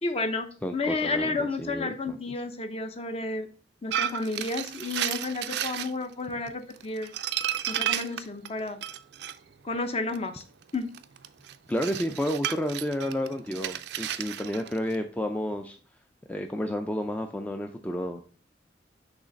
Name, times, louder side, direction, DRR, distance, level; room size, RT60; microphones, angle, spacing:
voice 1, 0.0-3.5 3.8-7.1 7.7-8.8 9.6-10.4 10.7-10.9, left 3 dB, 35° left, 8 dB, 0.7 m, -31 dB
voice 2, 0.6-2.2 11.7-15.8 16.3-18.2, equal, 10° left, 5 dB, 0.3 m, -31 dB
sound 1, 3.9-5.9 6.5-9.4 10.1-15.0, right 10 dB, 65° right, 0.4 m, -32 dB
6.3 x 3.2 x 5.1 m, 0.40 s
head